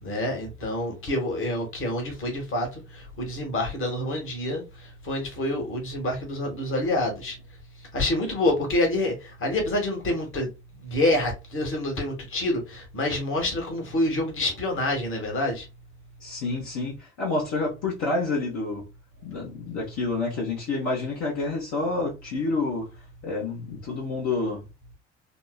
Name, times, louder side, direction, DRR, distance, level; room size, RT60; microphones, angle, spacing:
voice 1, 0.0-7.4 7.9-10.5 10.8-15.7, left 1 dB, 40° left, 1.3 m, -27 dB
voice 2, 16.2-18.9 19.2-22.9 23.2-24.6, left 3 dB, 55° left, 1.1 m, -28 dB
3.6 x 2.1 x 2.2 m
figure-of-eight pair, 50°, 33 cm